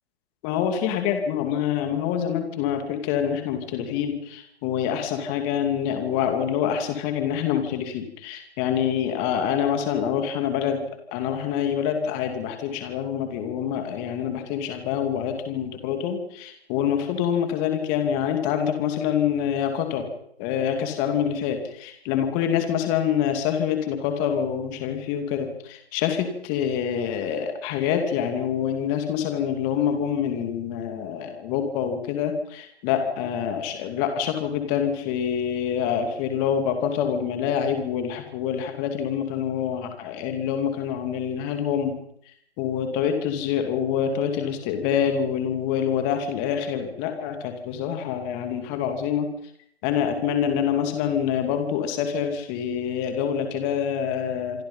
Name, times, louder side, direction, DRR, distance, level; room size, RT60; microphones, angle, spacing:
voice 1, 0.4-20.1 20.4-41.9 42.6-49.3 49.8-54.6, left 8 dB, 20° left, 6 dB, 2.6 m, -26 dB
27.0 x 23.5 x 5.6 m, 0.71 s
hypercardioid pair, 155°, 32 cm